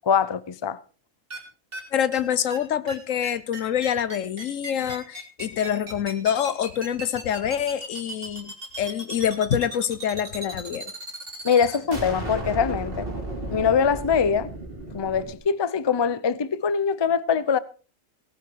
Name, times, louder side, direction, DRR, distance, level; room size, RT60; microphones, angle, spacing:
voice 1, 0.0-0.8 11.4-13.1 13.5-14.5 14.9-17.6, left 6 dB, 30° left, 0.5 m, -23 dB
sound 1, 1.3-1.4 1.7-1.8 2.1-2.2 2.5-2.6 2.9-3.0 3.2-15.3, right 1 dB, 45° right, 3.8 m, -34 dB
voice 2, 1.9-10.9, left 9 dB, 80° left, 1.3 m, -26 dB
18.0 x 11.0 x 4.7 m
omnidirectional pair, 1.3 m